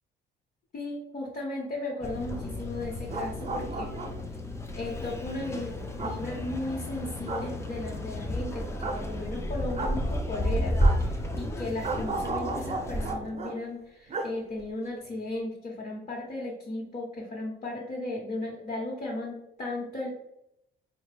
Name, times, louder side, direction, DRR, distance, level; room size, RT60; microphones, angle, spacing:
voice 1, 0.7-3.9 4.7-20.1, left 2 dB, 35° left, -4 dB, 0.9 m, -36 dB
sound 1, 2.0-13.2, equal, 15° left, 0.4 m, -32 dB
sound 2, 2.9-4.3 6.0-6.2 7.3-7.5 8.8-9.0 9.7-10.0 10.8-11.0 11.8-13.5 14.1-14.3 14.6-14.7, right 3 dB, 35° right, 0.5 m, -34 dB
3.8 x 2.1 x 3.3 m, 0.80 s
cardioid pair, 90°, 20 cm